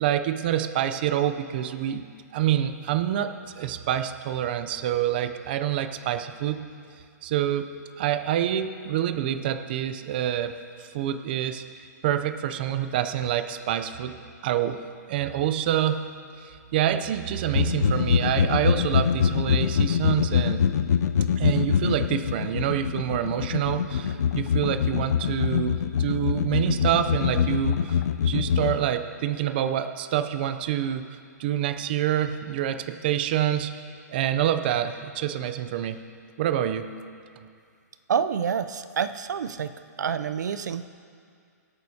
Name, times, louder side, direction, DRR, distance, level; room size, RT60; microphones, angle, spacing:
voice 1, 0.0-2.0 2.3-6.6 7.2-7.7 8.0-14.8 15.1-16.0 16.4-20.6 21.4-33.7 34.1-36.0 36.4-36.9, right 11 dB, 35° right, 9 dB, 0.5 m, -27 dB
sound 1, 17.5-28.8, left 7 dB, 70° left, 0.5 m, -24 dB
voice 2, 38.1-39.7 40.0-40.8, right 7 dB, 80° right, 12 dB, 0.5 m, -27 dB
24.5 x 8.9 x 2.8 m, 2.3 s
hypercardioid pair, 165°, 9 cm